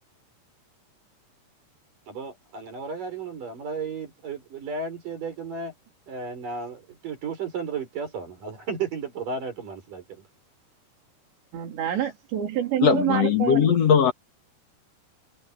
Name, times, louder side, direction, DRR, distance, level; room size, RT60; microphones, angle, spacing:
voice 1, 2.1-5.7 6.1-10.2, right 5 dB, 50° right, 7.2 m, -34 dB
voice 2, 11.5-13.7, right 11 dB, 90° right, 5.5 m, -27 dB
voice 3, 12.8-14.1, left 8 dB, 60° left, 1.7 m, -19 dB
omnidirectional pair, 4.9 m